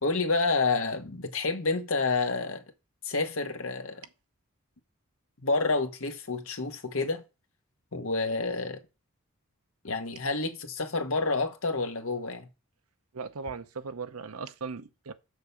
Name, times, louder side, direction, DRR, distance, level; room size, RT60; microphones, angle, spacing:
voice 1, 0.0-2.6 3.0-4.0 5.4-7.2 7.9-8.8 9.8-12.5, left 3 dB, 70° left, 1.4 m, -29 dB
voice 2, 13.1-15.1, right 4 dB, 90° right, 0.8 m, -38 dB
6.6 x 4.9 x 7.0 m
head